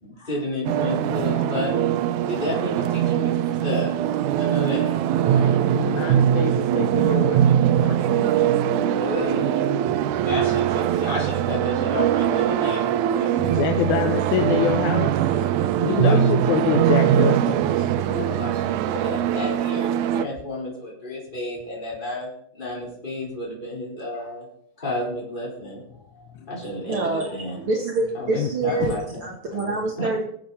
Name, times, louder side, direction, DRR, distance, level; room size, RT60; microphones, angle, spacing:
voice 1, 0.0-1.7 2.3-5.7 7.7-8.2 9.0-9.9 10.2-13.8 15.8-16.2 16.4-16.8 17.1-17.2 18.0-24.5 24.8-25.8 26.5-27.6 28.1-29.2 29.5-30.1, left 1 dB, 15° left, -5 dB, 4.6 m, -31 dB
sound 1, 0.7-20.3, right 11 dB, 90° right, 2.1 m, -22 dB
voice 2, 5.7-9.3 13.4-15.1 15.8-17.9 26.4-26.5 28.3-28.5 28.8-29.0, left 9 dB, 80° left, 7 dB, 2.1 m, -26 dB
voice 3, 26.9-28.9 29.2-30.2, right 3 dB, 50° right, 1 dB, 2.0 m, -26 dB
21.5 x 7.5 x 4.1 m, 0.70 s
omnidirectional pair, 3.4 m